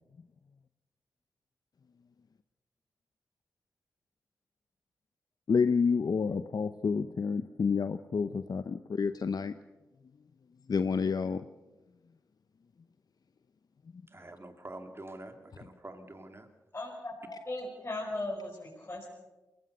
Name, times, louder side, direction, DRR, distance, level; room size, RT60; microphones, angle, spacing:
voice 1, 5.5-9.5 10.7-11.4, left 5 dB, 60° left, 11 dB, 0.7 m, -29 dB
voice 2, 14.1-16.5, right 2 dB, 35° right, 6 dB, 3.0 m, -46 dB
voice 3, 16.7-17.1 17.5-19.1, left 2 dB, 35° left, -4 dB, 5.7 m, -37 dB
21.5 x 18.5 x 6.8 m, 1.1 s
cardioid pair, 45°, 7 cm